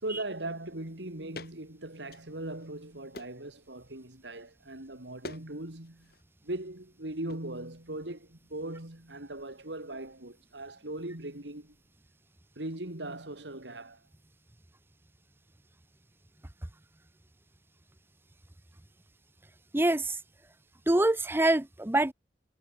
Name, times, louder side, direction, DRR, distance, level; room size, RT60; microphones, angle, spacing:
voice 1, 0.0-6.1 6.4-11.8 12.6-14.0, right 1 dB, 85° right, 3.5 m, -39 dB
sound 1, 1.3-1.6 2.0-2.7 3.1-3.5 5.2-5.5 5.7-6.2 7.3-7.4, left 2 dB, 60° left, 2.7 m, -45 dB
voice 2, 19.7-20.2 20.9-22.1, right 1 dB, 15° right, 0.7 m, -25 dB
head